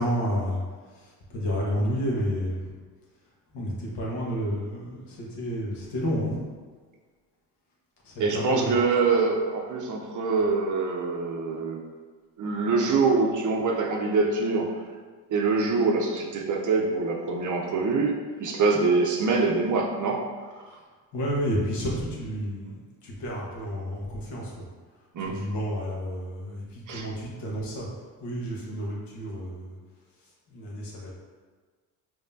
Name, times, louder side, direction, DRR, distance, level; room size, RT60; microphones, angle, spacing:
voice 1, 0.0-2.7 3.5-6.4 8.0-8.8 20.6-20.8 21.1-24.7 25.2-29.8 30.2-31.1, equal, 60° left, -3 dB, 1.3 m, -31 dB
voice 2, 8.2-11.8 12.4-14.8 15.3-20.3 25.1-25.4 26.9-27.0, right 4 dB, 40° right, 1 dB, 0.6 m, -24 dB
5.0 x 3.0 x 2.6 m, 1.5 s
hypercardioid pair, 65°, 48 cm